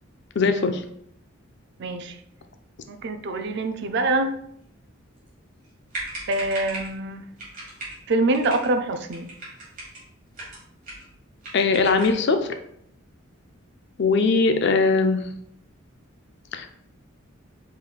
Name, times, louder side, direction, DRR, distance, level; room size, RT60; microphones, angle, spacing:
voice 1, 0.4-0.8 11.5-12.4 14.0-15.2 16.5-16.7, left 4 dB, 55° left, 7 dB, 0.5 m, -20 dB
voice 2, 1.8-2.2 2.9-4.4 6.3-7.2 8.1-9.3, right 2 dB, 55° right, 8 dB, 0.4 m, -25 dB
sound 1, 5.6-5.7 5.9-7.0 7.4-8.0 8.3-8.7 9.1-10.0 10.3-11.1 11.4-12.2, right 2 dB, 40° right, 1.7 m, -37 dB
4.8 x 3.9 x 2.3 m, 0.71 s
head